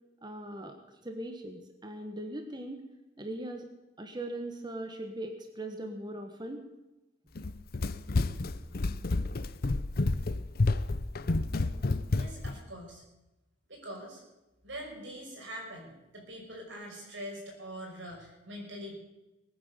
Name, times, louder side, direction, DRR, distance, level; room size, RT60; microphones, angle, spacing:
voice 1, 0.2-0.8 1.0-2.8 3.2-3.6 4.0-6.7, right 1 dB, 25° right, 5 dB, 1.3 m, -39 dB
Run, 7.3-12.6, left 2 dB, 55° left, 0.7 m, -30 dB
voice 2, 12.1-13.0 13.7-14.2 14.6-19.0, equal, 85° right, 1 dB, 5.5 m, -43 dB
20.5 x 9.6 x 6.8 m, 1.0 s
head